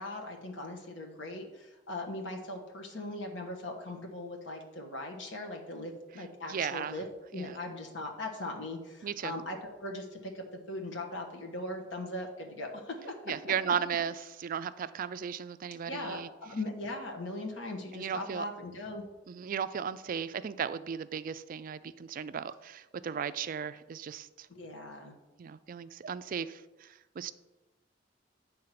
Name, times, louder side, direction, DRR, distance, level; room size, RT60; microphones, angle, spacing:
voice 1, 0.0-7.0 7.3-13.5 15.9-19.0 24.5-25.1, left 1 dB, 70° left, 1 dB, 1.3 m, -39 dB
voice 2, 6.5-6.9 7.4-7.5 9.0-9.3 13.3-14.1 14.4-16.3 17.9-18.4 19.3-24.3 25.4-26.9 27.2-27.3, right 7 dB, 45° right, 14 dB, 0.3 m, -35 dB
9.0 x 3.8 x 5.8 m, 1.1 s
head